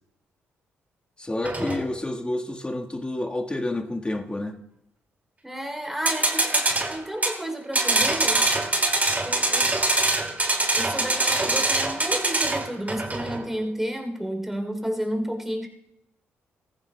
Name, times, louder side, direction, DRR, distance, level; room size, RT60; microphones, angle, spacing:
voice 1, 1.2-4.6, left 1 dB, 20° left, 1.5 m, -29 dB
sound 1, 1.4-1.9 6.0-7.4 7.7-13.5, right 2 dB, 30° right, 2.2 m, -24 dB
voice 2, 5.4-8.5 9.2-9.7 10.8-15.7, equal, 5° right, 3.1 m, -31 dB
18.5 x 14.5 x 2.2 m
supercardioid pair, 55°, 5 cm